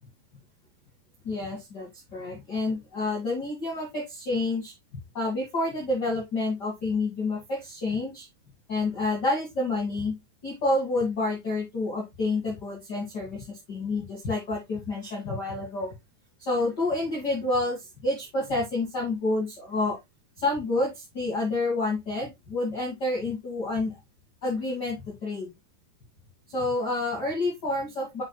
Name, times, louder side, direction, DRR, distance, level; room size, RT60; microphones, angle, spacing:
voice 1, 1.2-8.2 8.7-10.1 10.4-15.9 16.4-20.0 20.4-23.9 24.4-25.5 26.5-28.2, left 2 dB, 35° left, -4 dB, 1.7 m, -29 dB
7.5 x 6.2 x 2.3 m, 0.20 s
omnidirectional pair, 4.8 m